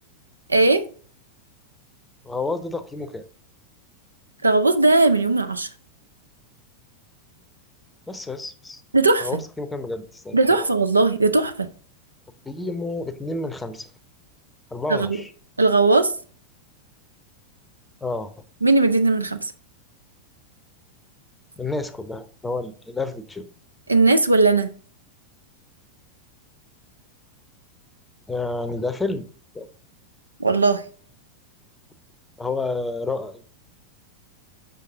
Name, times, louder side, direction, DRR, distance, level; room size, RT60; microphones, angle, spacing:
voice 1, 0.5-0.8 4.4-5.7 8.9-9.3 10.3-11.7 14.9-15.2 15.6-16.1 18.6-19.4 23.9-24.7 30.4-30.8, right 3 dB, 80° right, 0.5 m, -18 dB
voice 2, 2.2-3.2 8.1-8.8 9.2-10.7 12.4-13.9 14.7-15.3 18.0-18.3 21.6-23.5 28.3-29.3 29.5-29.7 32.4-33.4, left 3 dB, 10° left, 0.7 m, -30 dB
6.4 x 5.3 x 3.6 m
figure-of-eight pair, 90°, 0 cm